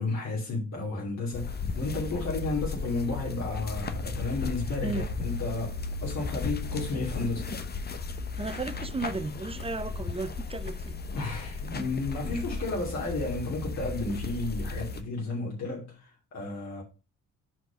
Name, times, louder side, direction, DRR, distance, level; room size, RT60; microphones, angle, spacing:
voice 1, 0.0-7.5 11.1-16.8, left 3 dB, 60° left, 2.8 m, -32 dB
sound 1, 1.3-15.0, left 4 dB, 35° left, 1.0 m, -35 dB
voice 2, 8.4-11.0 12.2-12.3, right 3 dB, 20° right, 0.8 m, -34 dB
6.0 x 4.9 x 5.1 m
cardioid pair, 90°, 30 cm